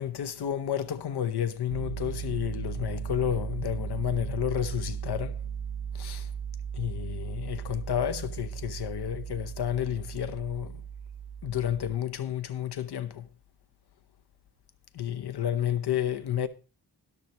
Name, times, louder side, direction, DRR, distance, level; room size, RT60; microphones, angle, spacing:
voice 1, 0.0-5.4 5.9-6.3 6.7-10.8 11.4-13.3 14.9-16.5, left 10 dB, 80° left, 0.9 m, -31 dB
Piano, 1.7-12.0, right 8 dB, 70° right, 0.8 m, -37 dB
12.5 x 11.5 x 3.0 m
wide cardioid pair, 180°, 39 cm